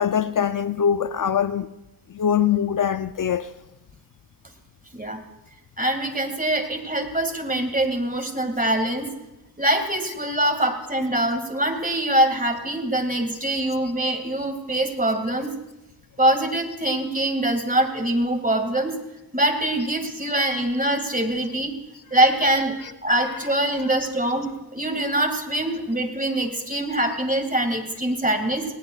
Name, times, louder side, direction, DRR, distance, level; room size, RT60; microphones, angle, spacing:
voice 1, 0.0-1.7 2.1-3.5 13.8-13.9 22.1-24.0, left 8 dB, 60° left, 0.5 m, -25 dB
voice 2, 5.8-9.1 9.6-15.5 16.2-19.0 19.3-21.7 22.1-22.7 23.0-28.6, right 1 dB, 20° right, 2.1 m, -23 dB
19.0 x 18.5 x 2.4 m
cardioid pair, 45°, 37 cm